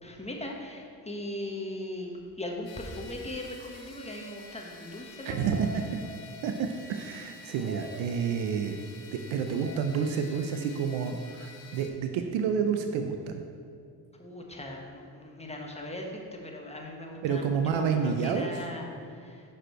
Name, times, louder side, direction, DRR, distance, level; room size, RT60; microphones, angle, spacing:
voice 1, 0.0-5.4 5.7-5.8 14.2-18.9 19.2-19.4, left 1 dB, 15° left, 0 dB, 1.2 m, -39 dB
sound 1, 2.6-11.9, left 5 dB, 55° left, 1.1 m, -50 dB
sound 2, 3.6-7.2 7.5-8.8 9.5-9.7, right 2 dB, 35° right, 0.9 m, -47 dB
voice 2, 5.2-6.0 6.4-8.8 9.1-13.4 17.2-18.6, right 6 dB, 85° right, 6 dB, 0.5 m, -29 dB
6.4 x 5.2 x 4.4 m, 2.4 s
supercardioid pair, 65°, 45 cm